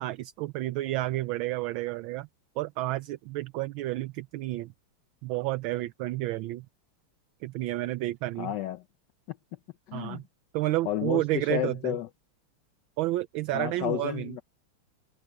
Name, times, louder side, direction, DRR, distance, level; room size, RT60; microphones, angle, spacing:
voice 1, 0.0-2.3 2.6-4.7 5.2-6.7 7.4-8.5 9.9-10.2 10.5-12.0 13.0-14.4, right 17 dB, 75° right, 1.3 m, -30 dB
voice 2, 8.4-8.8 9.3-9.4 9.9-10.2 10.8-12.1 13.5-14.4, left 13 dB, 70° left, 1.1 m, -31 dB
omnidirectional pair, 2.4 m